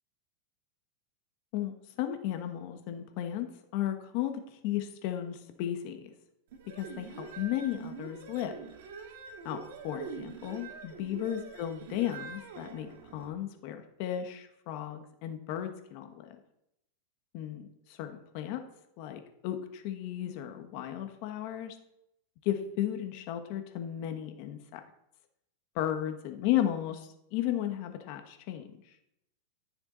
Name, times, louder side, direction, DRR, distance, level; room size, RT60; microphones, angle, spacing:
voice 1, 1.5-6.1 6.7-8.5 9.4-16.4 17.3-17.6 17.9-18.6 19.0-21.7 22.4-24.8 25.7-28.7, left 11 dB, 50° left, 6 dB, 1.4 m, -34 dB
sound 1, 6.5-13.3, right 5 dB, 65° right, 2.1 m, -45 dB
13.5 x 7.0 x 4.0 m, 0.80 s
supercardioid pair, 140°, 0 cm